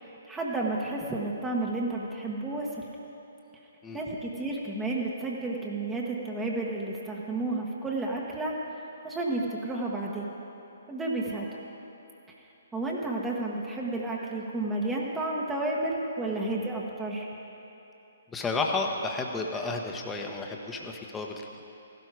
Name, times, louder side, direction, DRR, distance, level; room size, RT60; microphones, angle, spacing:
voice 1, 0.0-2.8 3.9-8.5 9.0-10.3 10.9-11.5 12.7-17.3, right 2 dB, 10° right, -2 dB, 1.3 m, -31 dB
voice 2, 18.3-21.3, left 3 dB, 10° left, 2 dB, 1.2 m, -31 dB
16.0 x 12.5 x 4.9 m, 3.0 s
figure-of-eight pair, 130°, 0 cm